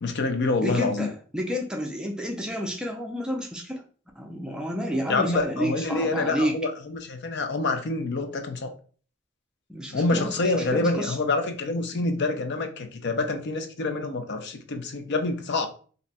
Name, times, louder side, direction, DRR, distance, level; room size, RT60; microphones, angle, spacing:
voice 1, 0.0-1.1 5.1-8.7 9.9-15.7, left 3 dB, 60° left, 6 dB, 0.5 m, -27 dB
voice 2, 0.6-3.8 4.2-6.6 9.7-11.2, equal, 5° right, 1 dB, 0.4 m, -30 dB
2.6 x 2.2 x 4.0 m, 0.41 s
head